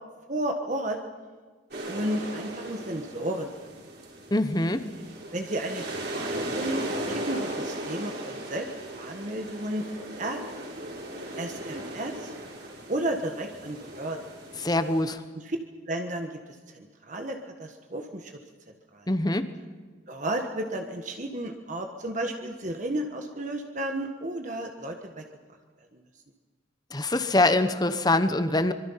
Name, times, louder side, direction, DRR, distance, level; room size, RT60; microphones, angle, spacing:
voice 1, 0.3-1.0 1.9-3.5 5.3-8.7 8.9-10.4 11.4-12.3 12.9-14.2 15.3-15.6 15.9-16.3 16.7-18.3 18.9-19.1 20.1-25.2 25.9-26.0, right 1 dB, 40° right, 4 dB, 1.4 m, -33 dB
sound 1, 1.7-15.0, right 1 dB, 55° right, 5.6 m, -37 dB
voice 2, 4.3-4.8 14.6-15.2 19.1-19.4 26.9-28.7, left 2 dB, 20° left, 11 dB, 1.0 m, -24 dB
25.0 x 23.5 x 5.7 m, 1.5 s
head